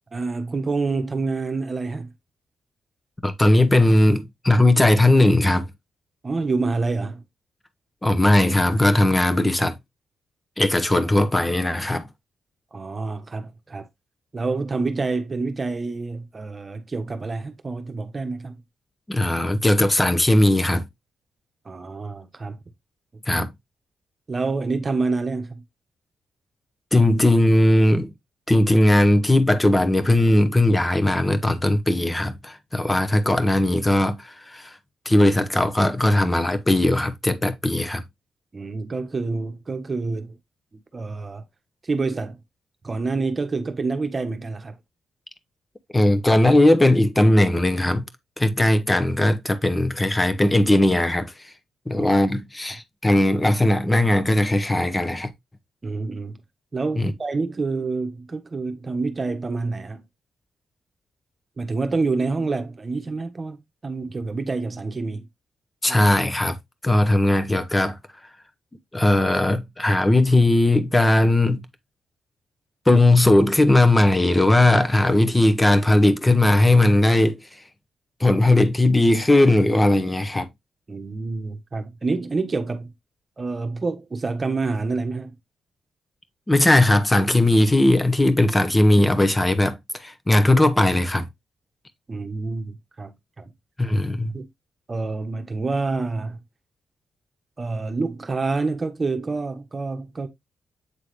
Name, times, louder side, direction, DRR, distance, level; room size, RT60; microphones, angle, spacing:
voice 1, 0.1-2.1 6.2-7.2 12.7-13.9 14.3-18.6 21.6-22.6 24.3-25.6 38.5-40.4 40.9-41.4 41.8-42.4 42.8-44.8 52.0-52.1 55.8-56.4 56.7-60.0 61.6-65.3 65.9-66.0 80.9-82.9 83.4-85.4 92.1-93.5 94.3-94.5 94.9-96.4 97.6-100.3, right 3 dB, 30° right, 1.2 m, -27 dB
voice 2, 3.2-5.7 8.0-9.8 10.6-12.1 19.1-20.9 23.3-23.5 26.9-28.1 28.5-34.8 35.1-38.0 45.9-48.0 48.4-51.3 51.9-55.3 57.0-57.1 65.8-66.6 66.8-68.0 68.9-71.6 72.9-77.4 78.2-80.5 86.5-91.3 93.8-94.3, left 1 dB, 15° left, 1.0 m, -18 dB
8.4 x 3.8 x 3.2 m
cardioid pair, 110°, 0 cm